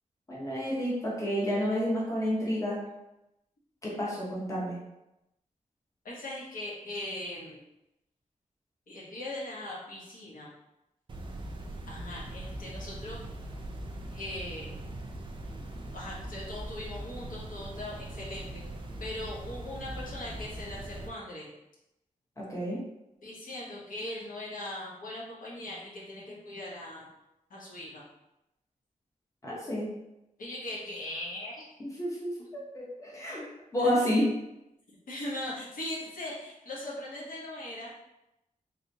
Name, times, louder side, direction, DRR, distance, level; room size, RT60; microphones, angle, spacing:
voice 1, 0.3-2.8 3.8-4.8 22.4-22.8 29.4-29.9 31.8-33.4 33.7-34.3, equal, 20° left, -5 dB, 0.9 m, -30 dB
voice 2, 6.0-7.6 8.9-10.5 11.9-13.2 14.1-14.7 15.9-18.6 19.0-21.5 23.2-27.1 27.5-28.0 30.4-31.7 33.8-33.9 35.1-37.9, left 1 dB, 80° left, -5 dB, 0.9 m, -40 dB
sound 1, 11.1-21.1, right 1 dB, 35° right, 0.4 m, -41 dB
3.3 x 2.8 x 2.7 m, 0.89 s
wide cardioid pair, 140°, 14 cm